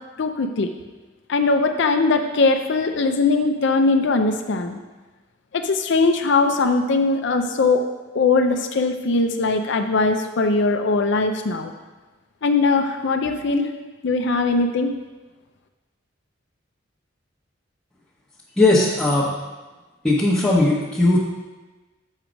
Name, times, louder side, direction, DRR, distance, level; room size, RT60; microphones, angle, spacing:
voice 1, 0.2-0.7 1.3-4.8 5.5-7.8 8.1-11.7 12.4-13.7 14.0-14.9, left 3 dB, 60° left, 6 dB, 0.5 m, -20 dB
voice 2, 18.6-19.3 20.0-21.2, left 2 dB, 5° left, -9 dB, 0.9 m, -18 dB
7.3 x 4.6 x 5.1 m, 1.2 s
head